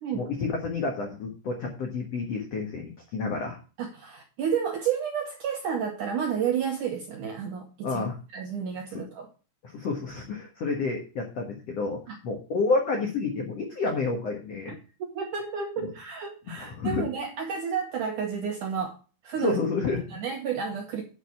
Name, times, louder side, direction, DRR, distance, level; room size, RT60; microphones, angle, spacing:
voice 1, 0.1-3.6 7.8-8.2 9.6-14.7 15.8-15.9 16.6-17.0 19.4-20.2, left 4 dB, 75° left, 2 dB, 1.4 m, -29 dB
voice 2, 3.8-8.0 8.3-9.3 12.1-12.2 15.0-19.0 19.2-19.6 20.1-21.0, right 7 dB, 75° right, 1 dB, 1.9 m, -31 dB
10.0 x 4.8 x 7.1 m, 0.35 s
omnidirectional pair, 5.2 m